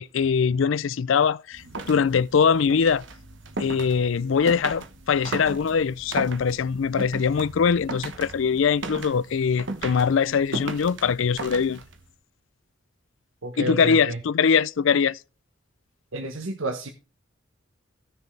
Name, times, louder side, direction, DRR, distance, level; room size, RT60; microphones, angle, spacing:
voice 1, 0.0-3.0 3.6-11.8 13.6-15.2, left 6 dB, 70° left, 0.4 m, -22 dB
sound 1, 1.5-12.1, right 3 dB, 65° right, 1.1 m, -37 dB
voice 2, 13.4-14.2 16.1-16.9, right 2 dB, 85° right, 1.2 m, -30 dB
15.5 x 6.7 x 3.2 m
head